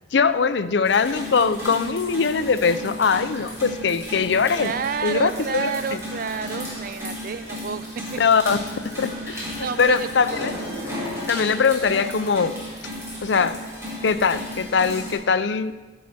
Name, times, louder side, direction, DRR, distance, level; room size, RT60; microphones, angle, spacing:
voice 1, 0.1-4.7 5.0-6.0 8.2-8.6 8.8-10.5 11.3-12.5 13.2-13.5 14.0-15.7, left 5 dB, 65° left, 12 dB, 0.5 m, -21 dB
sound 1, 0.8-15.1, equal, 15° right, 3.6 m, -34 dB
voice 2, 4.5-8.2 9.1-10.1, right 5 dB, 45° right, 12 dB, 0.4 m, -30 dB
14.0 x 7.4 x 4.2 m, 1.2 s
head